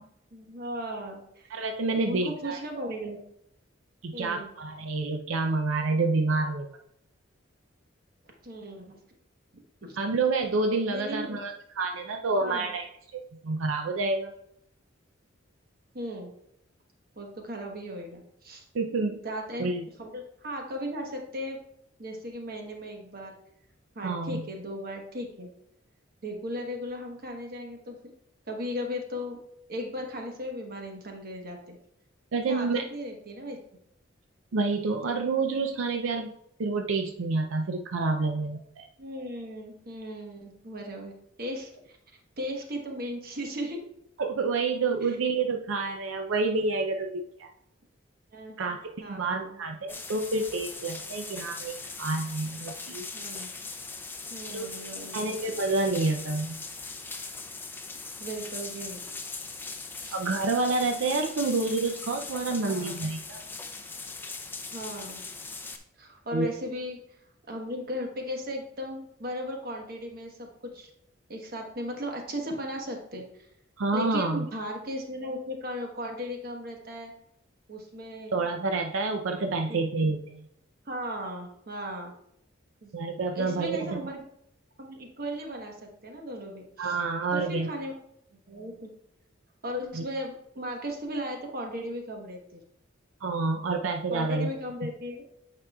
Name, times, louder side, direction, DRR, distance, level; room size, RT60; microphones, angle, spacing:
voice 1, 0.3-1.6 2.1-3.2 4.1-4.5 8.4-9.0 9.8-10.0 10.9-11.4 12.4-12.7 15.9-16.3 17.2-18.6 18.9-19.7 20.0-21.6 22.0-23.3 23.9-25.5 26.2-28.0 28.5-29.4 29.7-31.8 32.5-33.6 39.0-41.1 41.4-42.0 42.4-43.8 45.0-45.2 48.3-48.6 49.0-49.6 53.1-53.5 54.3-55.3 58.2-59.0 60.0-60.2 62.6-63.0 64.7-65.2 66.0-67.0 67.5-70.9 71.3-73.2 73.9-77.1 77.7-78.4 79.2-79.3 79.7-79.9 80.9-82.1 82.8-82.9 83.3-84.2 84.8-87.0 87.3-87.9 88.5-88.9 89.6-92.6 94.1-95.2, equal, 50° right, 2 dB, 1.1 m, -36 dB
voice 2, 1.5-2.6 4.0-6.7 10.0-12.9 13.1-14.3 18.7-19.2 19.6-19.9 24.0-24.5 32.3-32.8 34.5-36.3 36.6-38.9 44.2-47.5 48.6-48.8 49.1-53.0 54.5-54.7 55.1-56.6 60.1-63.4 66.3-66.5 73.8-74.5 78.3-80.5 82.9-84.0 86.8-87.7 89.9-90.0 93.2-94.5, right 3 dB, 85° right, 4 dB, 0.5 m, -28 dB
sound 1, 49.9-65.8, left 4 dB, 10° left, 0.4 m, -40 dB
8.4 x 5.1 x 2.3 m, 0.74 s
head